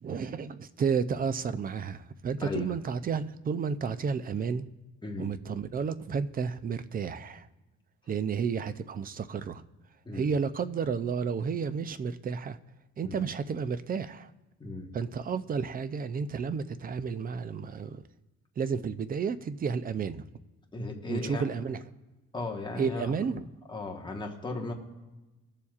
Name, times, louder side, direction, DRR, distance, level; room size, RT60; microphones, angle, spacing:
voice 1, 0.0-4.6 5.2-7.5 8.1-9.6 10.1-12.6 13.0-14.3 14.9-18.0 18.6-20.2 21.1-21.8 22.8-23.4, right 6 dB, 30° right, 0.4 m, -31 dB
voice 2, 2.4-2.7 5.0-5.3 10.0-10.3 13.0-13.2 14.6-14.9 20.7-21.5 22.3-23.1 23.7-24.7, left 2 dB, 15° left, 1.3 m, -35 dB
21.0 x 7.0 x 2.4 m
cardioid pair, 140°, 30 cm